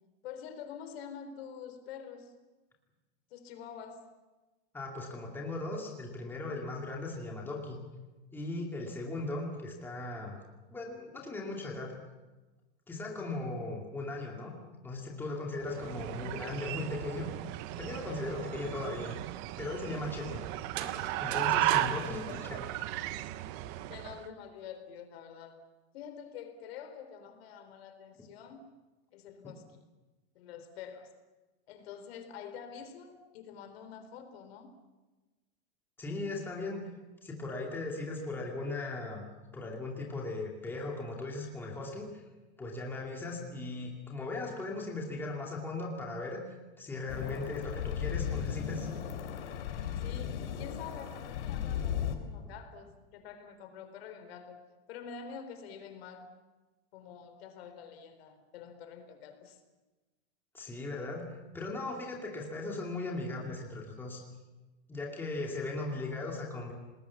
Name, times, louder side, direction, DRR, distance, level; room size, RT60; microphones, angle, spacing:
voice 1, 0.2-2.3 3.3-4.1 15.8-16.0 22.0-22.5 23.9-25.7 25.9-28.7 29.1-29.9 30.3-31.1 31.7-34.7 50.0-56.4 56.9-59.6, left 7 dB, 60° left, 8 dB, 3.9 m, -47 dB
voice 2, 4.7-7.8 8.3-10.4 10.7-11.9 12.9-14.5 14.8-17.3 17.8-19.2 19.6-20.5 21.2-22.6 29.4-29.5 36.0-36.8 37.2-39.2 39.5-42.2 42.6-46.4 46.8-48.9 60.5-61.3 61.5-64.2 64.9-66.7, left 2 dB, 5° left, -1 dB, 2.5 m, -38 dB
sound 1, 15.6-24.3, right 15 dB, 30° right, 0.7 m, -35 dB
sound 2, 20.6-23.5, right 10 dB, 65° right, 2.4 m, -41 dB
sound 3, 47.1-52.1, left 9 dB, 85° left, 4.0 m, -36 dB
29.5 x 20.0 x 7.2 m, 1.2 s
supercardioid pair, 170°, 34 cm